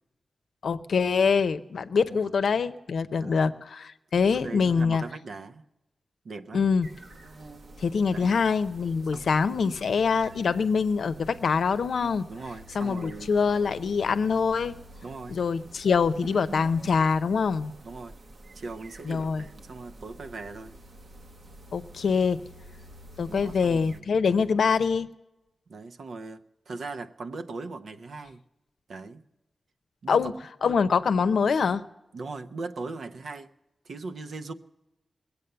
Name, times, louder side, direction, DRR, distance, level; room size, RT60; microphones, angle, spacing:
voice 1, 0.6-5.0 6.5-6.9 7.8-12.2 12.7-14.8 15.3-17.7 19.0-19.4 21.7-22.4 23.2-25.1 30.1-30.3 30.6-31.8, left 5 dB, 85° left, 0.6 m, -24 dB
voice 2, 2.0-2.3 3.2-3.5 4.3-5.6 6.2-6.7 8.1-8.4 9.1-9.3 12.3-13.5 15.0-15.4 17.8-18.1 18.5-20.7 23.3-24.1 25.7-28.4 28.9-29.2 30.0-30.3 32.1-33.5 33.8-34.5, right 3 dB, 80° right, 0.8 m, -39 dB
sound 1, 6.8-24.0, right 1 dB, 60° right, 1.0 m, -48 dB
20.5 x 8.2 x 6.8 m
wide cardioid pair, 85°, 0 cm